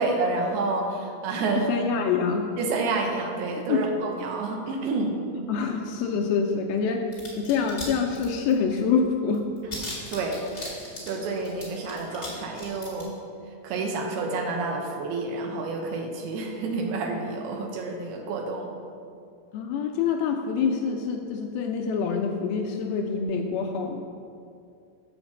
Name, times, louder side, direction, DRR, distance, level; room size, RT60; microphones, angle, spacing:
voice 1, 0.0-1.8 2.6-5.2 10.1-10.4 11.0-13.2 13.6-18.7, right 3 dB, 80° right, 2 dB, 2.9 m, -29 dB
voice 2, 1.6-2.5 3.7-3.9 5.5-7.1 7.4-9.5 19.5-24.0, left 6 dB, 80° left, 2 dB, 2.3 m, -26 dB
sound 1, 7.1-7.9 8.1-8.8 9.0-9.1 9.3-12.3 12.5-13.0, left 2 dB, 25° left, 1.4 m, -38 dB
7.9 x 5.0 x 7.0 m, 2.4 s
omnidirectional pair, 4.6 m